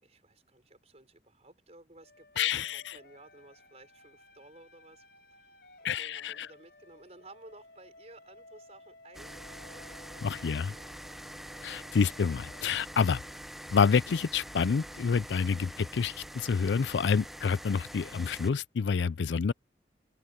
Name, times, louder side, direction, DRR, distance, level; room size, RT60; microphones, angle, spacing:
voice 1, 0.0-5.6 5.8-11.7, right 2 dB, 40° right, 5.5 m, -55 dB
sound 1, 2.0-13.8, left 2 dB, 65° left, 4.0 m, -57 dB
voice 2, 2.4-2.8 5.8-6.5 10.2-10.7 11.6-13.2 13.7-19.5, left 5 dB, 85° left, 0.4 m, -28 dB
sound 2, 9.1-18.5, equal, ahead, 0.7 m, -45 dB
open air
head